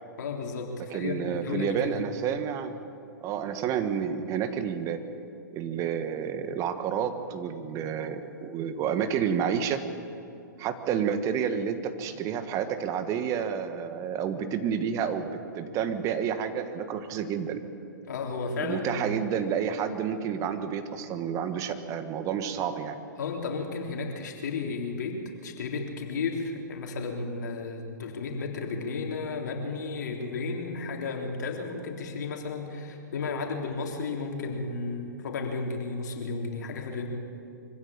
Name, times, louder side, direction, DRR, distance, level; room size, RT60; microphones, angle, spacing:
voice 1, 0.2-2.0 18.1-19.1 23.2-37.1, left 4 dB, 60° left, 2 dB, 3.6 m, -33 dB
voice 2, 0.9-2.7 3.2-5.0 5.5-9.8 10.6-17.6 18.6-23.0, right 8 dB, 30° right, 9 dB, 1.6 m, -30 dB
24.0 x 16.0 x 8.9 m, 2.6 s
hypercardioid pair, 115°, 10 cm